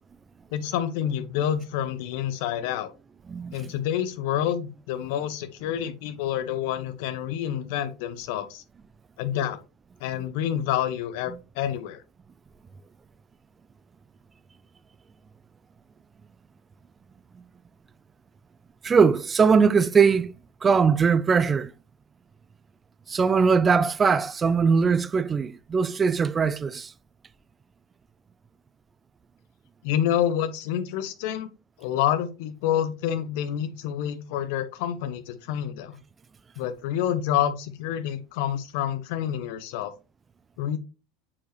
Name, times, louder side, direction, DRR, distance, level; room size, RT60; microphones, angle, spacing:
voice 1, 0.5-2.9 3.5-8.6 9.2-9.6 10.0-12.0 29.8-31.5 31.8-36.0 36.6-39.9 40.6-40.8, left 10 dB, 60° left, 0.8 m, -28 dB
voice 2, 3.3-3.7 18.8-20.3 20.6-21.7 23.1-26.9, right 5 dB, 25° right, 0.4 m, -21 dB
7.1 x 4.6 x 3.2 m
figure-of-eight pair, 75°, 0 cm